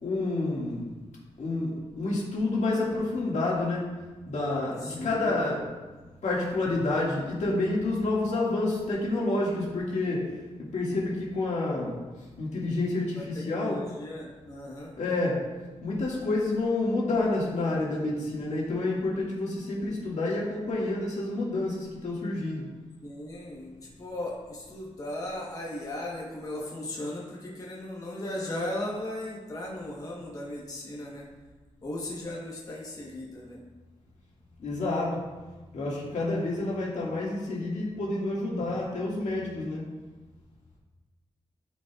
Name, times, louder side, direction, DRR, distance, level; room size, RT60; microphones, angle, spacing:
voice 1, 0.0-0.9 1.4-3.9 4.3-5.6 6.2-13.8 15.0-15.4 15.8-22.7 34.6-35.2 35.7-39.9, left 2 dB, 80° left, -5 dB, 2.0 m, -29 dB
voice 2, 4.8-5.4 13.1-14.9 23.0-31.3 31.8-33.6, left 1 dB, 30° left, -3 dB, 1.2 m, -37 dB
12.5 x 5.2 x 2.4 m, 1.2 s
wide cardioid pair, 160°, 12 cm